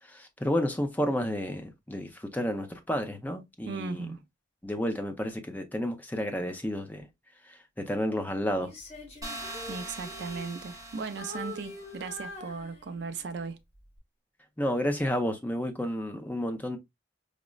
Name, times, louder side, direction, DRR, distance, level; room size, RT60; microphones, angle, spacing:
voice 1, 0.1-4.1 4.6-7.1 7.5-8.7 14.6-16.8, equal, 10° left, 0.4 m, -31 dB
voice 2, 3.7-4.2 9.7-13.6, right 5 dB, 60° right, 0.4 m, -37 dB
Female singing, 8.6-10.9 11.2-13.2 13.7-14.0, left 2 dB, 35° left, 1.1 m, -44 dB
sound 1, 9.2-12.1, right 1 dB, 20° right, 0.8 m, -42 dB
4.9 x 2.0 x 2.2 m
head